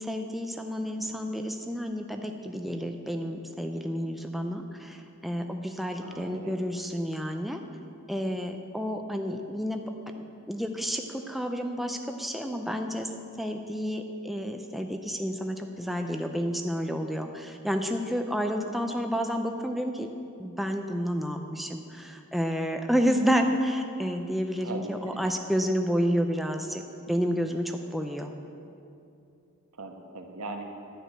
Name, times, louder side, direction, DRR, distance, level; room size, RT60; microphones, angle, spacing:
voice 1, 0.0-7.6 8.1-9.8 10.1-20.1 20.4-26.8 27.1-28.3, equal, ahead, 4 dB, 0.5 m, -30 dB
voice 2, 6.0-6.6 9.0-9.1 18.6-18.9 24.6-25.2 27.1-27.4 29.7-30.6, right 2 dB, 85° right, 3 dB, 1.3 m, -41 dB
11.0 x 6.3 x 9.0 m, 2.6 s
head